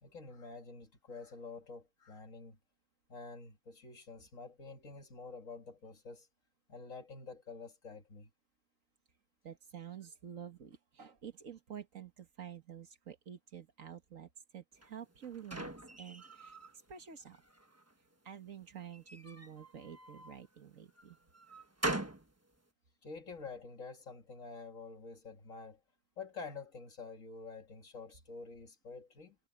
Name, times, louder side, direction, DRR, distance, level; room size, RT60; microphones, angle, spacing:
voice 1, 0.0-2.6 3.1-6.3 6.7-8.3 23.0-25.8 26.2-29.4, left 4 dB, 65° left, 2.4 m, -48 dB
voice 2, 9.4-15.7 16.0-16.5 16.9-17.4 18.3-21.2, right 8 dB, 65° right, 2.0 m, -49 dB
sound 1, 14.8-16.7 17.2-17.9 18.9-20.4 21.0-22.3, right 2 dB, 10° right, 1.2 m, -42 dB
omnidirectional pair, 1.5 m